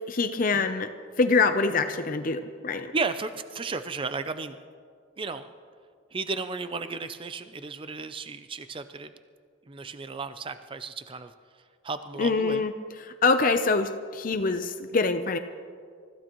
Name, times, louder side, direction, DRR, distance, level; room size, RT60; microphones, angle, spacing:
voice 1, 0.1-0.9 1.2-2.9 12.2-12.7 13.2-15.4, left 4 dB, 45° left, 8 dB, 0.6 m, -24 dB
voice 2, 2.9-4.6 5.2-5.5 6.1-9.1 9.7-11.3 11.8-12.7, right 4 dB, 25° right, 10 dB, 0.5 m, -34 dB
29.0 x 15.0 x 3.0 m, 2.1 s
head